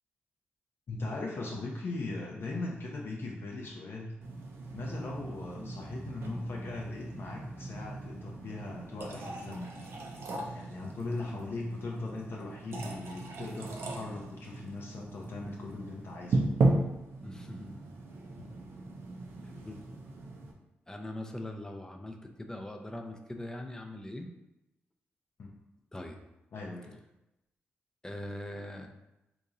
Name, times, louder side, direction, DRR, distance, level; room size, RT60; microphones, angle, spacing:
voice 1, 0.9-4.1 4.7-10.0 10.5-16.5 18.4-18.5 25.4-25.6 26.5-27.0, left 2 dB, 60° left, -2 dB, 0.6 m, -39 dB
sound 1, 4.2-20.5, right 2 dB, 70° right, 0.5 m, -36 dB
voice 2, 17.2-17.9 19.4-19.8 20.9-24.3 25.9-26.2 28.0-28.9, left 1 dB, 15° left, 4 dB, 0.5 m, -42 dB
2.9 x 2.6 x 3.8 m, 0.93 s
supercardioid pair, 55°, 4 cm